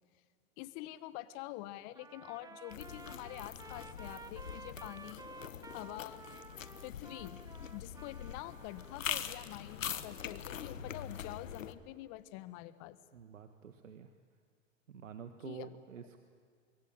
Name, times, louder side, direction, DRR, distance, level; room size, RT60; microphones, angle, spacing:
voice 1, 0.6-5.3 5.7-6.2 6.8-7.4 7.7-13.0 15.4-15.7, left 16 dB, 45° left, 14 dB, 1.6 m, -46 dB
Trumpet, 1.9-9.1, right 3 dB, 10° right, 1.2 m, -53 dB
sound 1, 2.7-11.7, left 8 dB, 85° left, 1.5 m, -44 dB
voice 2, 13.1-14.1 14.9-16.2, right 7 dB, 80° right, 8 dB, 1.7 m, -49 dB
25.5 x 22.5 x 9.0 m, 2.1 s
hypercardioid pair, 105°, 38 cm